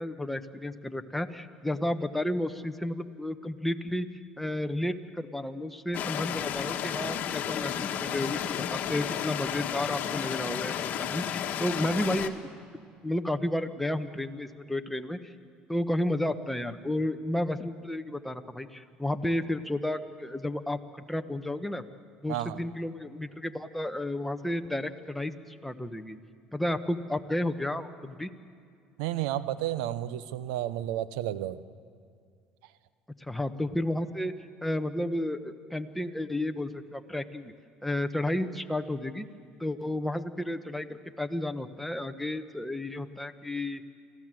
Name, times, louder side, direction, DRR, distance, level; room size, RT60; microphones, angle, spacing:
voice 1, 0.0-4.1 4.4-12.6 13.0-15.3 15.7-21.8 22.2-26.2 26.5-28.3 33.2-34.3 34.6-37.5 37.8-39.2 39.6-43.8, left 1 dB, 5° left, 7 dB, 1.2 m, -32 dB
sound 1, 5.9-12.3, left 9 dB, 55° left, 1.5 m, -32 dB
voice 2, 22.3-22.6 29.0-31.6, right 13 dB, 85° right, 15 dB, 0.8 m, -31 dB
26.0 x 15.5 x 7.7 m, 2.3 s
supercardioid pair, 90°, 3 cm